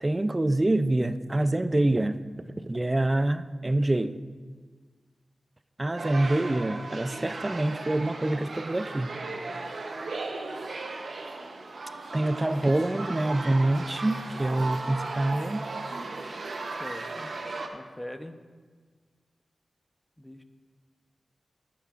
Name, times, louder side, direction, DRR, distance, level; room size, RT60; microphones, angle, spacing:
voice 1, 0.0-2.2 2.6-4.2 5.8-9.1 12.1-15.6, right 1 dB, 25° right, 12 dB, 0.4 m, -26 dB
sound 1, 6.0-17.7, right 3 dB, 70° right, 0.8 m, -36 dB
voice 2, 16.8-17.3 17.7-18.4 20.2-20.4, left 1 dB, 10° left, 8 dB, 0.7 m, -41 dB
14.0 x 9.5 x 2.5 m, 1.5 s
cardioid pair, 65°, 0 cm